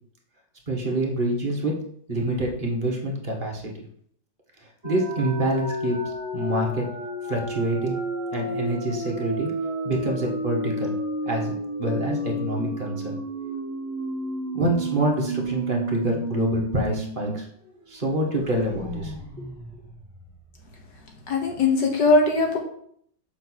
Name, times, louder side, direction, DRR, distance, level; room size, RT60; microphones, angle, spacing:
voice 1, 0.7-1.8 2.1-3.7 4.8-6.9 7.3-8.0 8.3-9.5 9.8-10.9 11.2-11.5 11.8-13.2 14.5-17.5 17.9-19.1, right 1 dB, 30° right, -1 dB, 1.5 m, -26 dB
sound 1, 4.8-17.3 17.7-17.8 18.1-20.8, right 1 dB, 10° right, 1.2 m, -31 dB
voice 2, 21.3-22.6, left 3 dB, 65° left, 2 dB, 1.7 m, -20 dB
7.3 x 3.6 x 6.3 m, 0.65 s
omnidirectional pair, 2.1 m